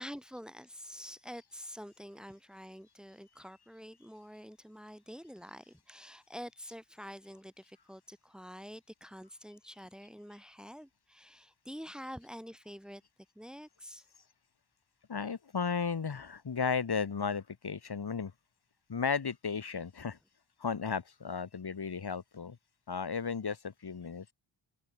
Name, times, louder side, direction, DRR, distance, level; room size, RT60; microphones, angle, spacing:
voice 1, 0.0-13.0 13.3-14.1, equal, ahead, 6.4 m, -47 dB
voice 2, 15.1-18.3 18.9-20.2 20.6-22.6 22.9-24.3, left 6 dB, 50° left, 3.8 m, -35 dB
cardioid pair, 65°, 50 cm